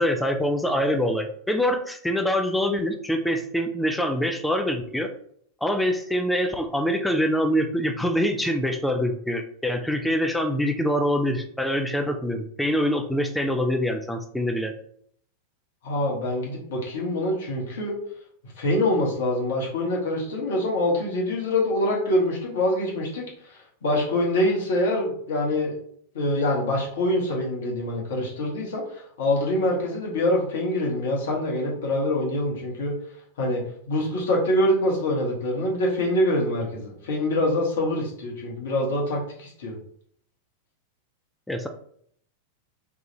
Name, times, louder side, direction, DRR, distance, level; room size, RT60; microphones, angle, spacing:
voice 1, 0.0-5.1 5.6-14.7 41.5-41.7, equal, 5° left, 5 dB, 0.4 m, -25 dB
voice 2, 15.8-17.9 18.6-25.7 26.1-32.9 33.4-39.8, left 1 dB, 60° left, -2 dB, 1.1 m, -25 dB
3.6 x 2.4 x 2.9 m, 0.63 s
figure-of-eight pair, 90°, 0 cm